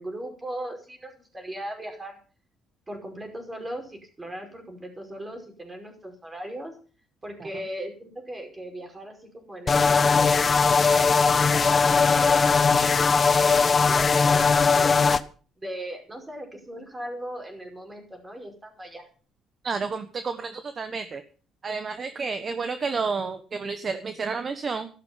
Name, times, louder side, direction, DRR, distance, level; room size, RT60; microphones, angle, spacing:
voice 1, 0.0-2.2 2.9-6.8 7.2-15.0 15.6-19.1, right 1 dB, 15° right, 3 dB, 5.2 m, -38 dB
sound 1, 9.7-15.2, left 5 dB, 30° left, 1.0 m, -19 dB
voice 2, 19.6-21.2 21.6-24.9, right 4 dB, 35° right, 9 dB, 1.3 m, -30 dB
14.0 x 12.0 x 5.8 m, 0.39 s
cardioid pair, 125°, 0 cm